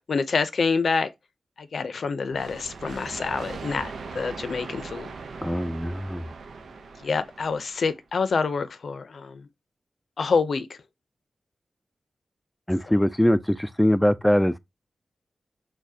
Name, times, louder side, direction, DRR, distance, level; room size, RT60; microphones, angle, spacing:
voice 1, 0.1-1.1 1.6-5.1 7.0-9.4 10.2-10.8, left 4 dB, 70° left, 0.5 m, -27 dB
sound 1, 2.3-7.9, right 4 dB, 90° right, 0.6 m, -39 dB
voice 2, 5.4-6.3 12.7-14.6, equal, 5° left, 0.3 m, -22 dB
6.2 x 2.2 x 2.7 m
cardioid pair, 70°, 0 cm